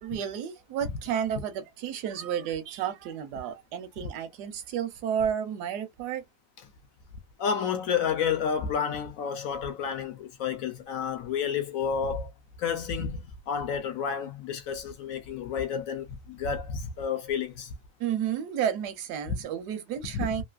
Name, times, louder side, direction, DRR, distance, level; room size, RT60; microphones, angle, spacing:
voice 1, 0.0-6.2 18.0-20.4, right 9 dB, 80° right, 1.2 m, -31 dB
voice 2, 7.4-12.3 12.6-17.7 19.3-19.4 20.1-20.3, left 7 dB, 65° left, 0.9 m, -30 dB
3.1 x 2.5 x 2.4 m
omnidirectional pair, 1.7 m